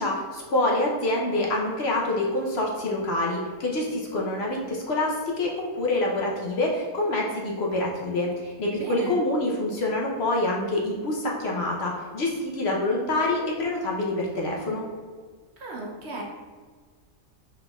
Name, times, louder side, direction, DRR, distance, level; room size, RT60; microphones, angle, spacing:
voice 1, 0.0-14.8, left 2 dB, 60° left, -2 dB, 0.8 m, -26 dB
voice 2, 8.8-9.2 15.6-16.2, right 2 dB, 60° right, -1 dB, 0.8 m, -35 dB
5.9 x 3.6 x 2.3 m, 1.5 s
omnidirectional pair, 1.4 m